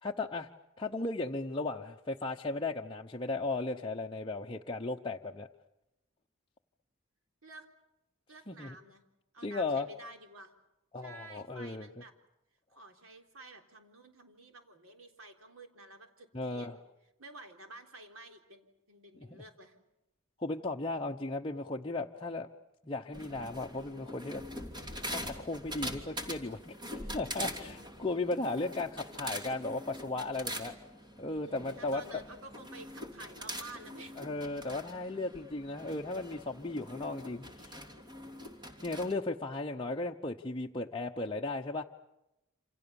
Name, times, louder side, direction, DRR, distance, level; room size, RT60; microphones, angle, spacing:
voice 1, 0.0-0.5 0.8-5.5 8.5-8.8 9.4-9.9 10.9-11.9 16.3-16.7 20.4-22.5 22.8-24.4 25.0-30.7 31.2-32.2 34.2-37.7 38.8-41.8, left 2 dB, 25° left, 0 dB, 0.9 m, -36 dB
voice 2, 8.3-9.0 9.3-10.5 11.0-12.1 12.7-16.8 17.2-19.8 27.7-27.9 31.4-34.6, right 2 dB, 85° right, 5 dB, 3.7 m, -51 dB
sound 1, 23.1-39.1, equal, 20° right, 3.0 m, -43 dB
28.0 x 27.5 x 7.1 m, 0.91 s
head